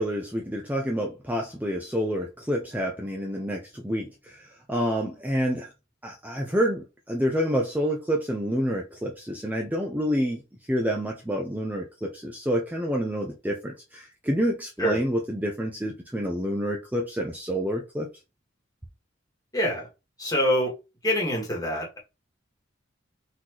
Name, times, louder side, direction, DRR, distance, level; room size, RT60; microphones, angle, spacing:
voice 1, 0.0-5.7 6.0-10.4 10.7-18.1, equal, 10° right, 0.6 m, -28 dB
voice 2, 19.5-19.9 20.2-20.7 21.0-22.0, equal, 20° left, 1.6 m, -25 dB
4.3 x 3.9 x 3.0 m
head